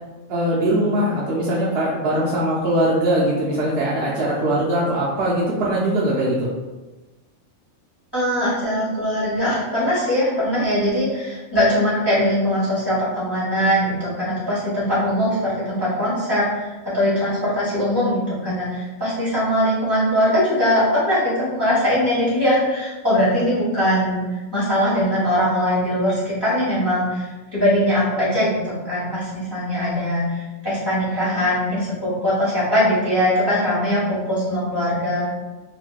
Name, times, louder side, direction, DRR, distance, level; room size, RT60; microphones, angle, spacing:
voice 1, 0.3-6.5, right 1 dB, 60° right, -6 dB, 0.7 m, -21 dB
voice 2, 8.1-24.2 24.5-35.3, equal, 20° left, -11 dB, 1.2 m, -21 dB
3.0 x 3.0 x 2.3 m, 1.2 s
omnidirectional pair, 1.4 m